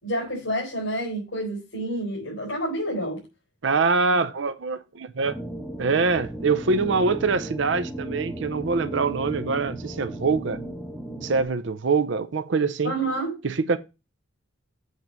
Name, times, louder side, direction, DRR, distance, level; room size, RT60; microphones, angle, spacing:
voice 1, 0.0-3.2 12.8-13.3, right 1 dB, 65° left, 4.3 m, -28 dB
voice 2, 3.6-5.4 5.8-10.6 11.2-12.9 13.4-13.8, right 4 dB, 65° right, 0.5 m, -24 dB
sound 1, 5.2-11.4, right 1 dB, ahead, 1.4 m, -35 dB
8.0 x 4.0 x 5.9 m
head